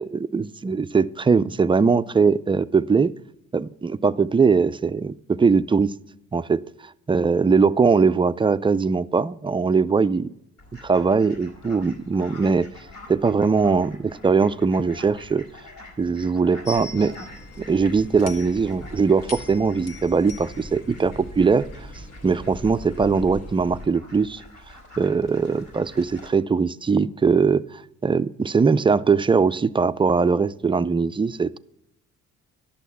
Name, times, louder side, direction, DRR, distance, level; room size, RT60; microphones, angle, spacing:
voice 1, 0.0-3.1 3.5-5.9 6.3-6.6 7.1-10.3 10.8-12.7 13.1-15.5 16.0-17.3 17.6-21.7 22.2-24.4 25.0-31.6, right 5 dB, 15° right, 0.3 m, -21 dB
Fowl, 10.6-26.3, left 2 dB, 75° left, 4.2 m, -46 dB
sound 1, 16.6-23.9, equal, 55° left, 1.6 m, -40 dB
12.0 x 6.3 x 6.8 m
cardioid pair, 90°, 30 cm